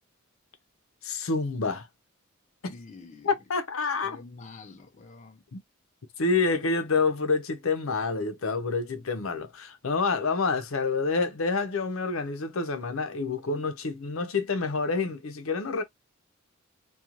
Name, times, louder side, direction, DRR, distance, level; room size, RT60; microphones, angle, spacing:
voice 1, 1.0-1.9 2.6-2.8 3.2-4.2 5.5-5.6 6.2-15.8, left 4 dB, 70° left, 0.6 m, -28 dB
voice 2, 2.7-3.3 4.0-5.4, left 3 dB, 35° left, 0.4 m, -47 dB
2.9 x 2.3 x 2.3 m
head